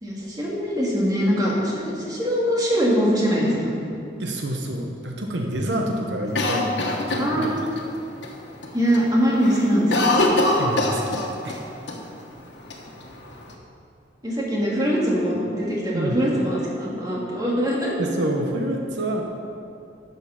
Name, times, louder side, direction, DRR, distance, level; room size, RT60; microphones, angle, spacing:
voice 1, 0.0-3.7 5.9-6.0 7.2-7.7 8.7-10.2 14.2-18.0, equal, 20° right, -4 dB, 2.1 m, -22 dB
voice 2, 4.2-7.5 10.6-11.6 15.9-16.2 18.0-19.2, right 1 dB, 80° right, 2 dB, 0.9 m, -28 dB
Cough, 6.3-7.8 8.2-8.3 8.6-9.0 9.3-11.6 11.9-12.0 12.7-13.5, left 2 dB, 80° left, 1.3 m, -23 dB
11.0 x 6.9 x 5.7 m, 2.5 s
head